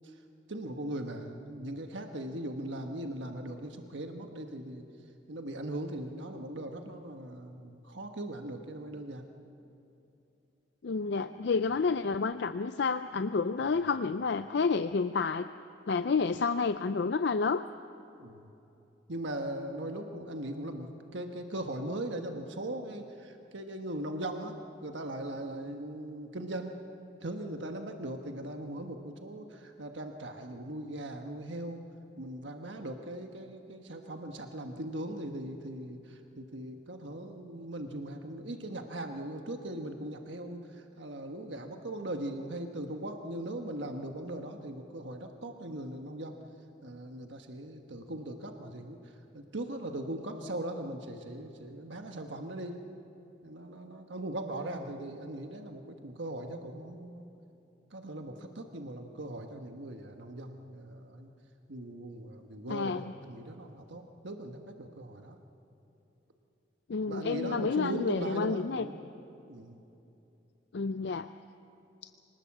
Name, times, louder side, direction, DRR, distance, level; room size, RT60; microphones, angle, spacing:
voice 1, 0.5-4.8 5.3-9.2 13.7-13.9 18.2-18.5 19.1-26.8 27.2-31.8 32.2-46.4 46.8-49.0 49.3-52.8 53.4-57.3 57.9-61.3 61.7-65.4 67.1-68.9 69.5-69.8, right 1 dB, 75° right, 4 dB, 1.3 m, -39 dB
voice 2, 10.8-15.5 15.9-17.6 62.7-63.1 66.9-68.9 70.7-71.3, left 4 dB, 60° left, 10 dB, 0.5 m, -30 dB
25.0 x 19.0 x 7.3 m, 2.8 s
head